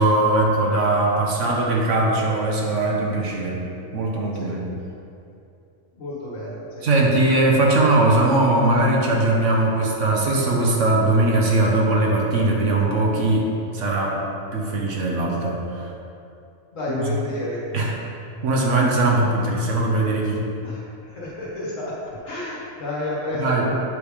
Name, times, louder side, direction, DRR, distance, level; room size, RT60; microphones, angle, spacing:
voice 1, 0.0-3.6 3.9-4.7 6.8-14.2 14.5-15.9 17.7-17.9 18.4-20.4 23.3-23.7, right 2 dB, 60° right, -1 dB, 1.2 m, -20 dB
voice 2, 5.9-6.9 16.7-17.7 20.6-22.0 22.2-23.8, left 1 dB, 65° left, -6 dB, 1.8 m, -30 dB
8.1 x 3.4 x 4.9 m, 2.6 s
omnidirectional pair, 1.5 m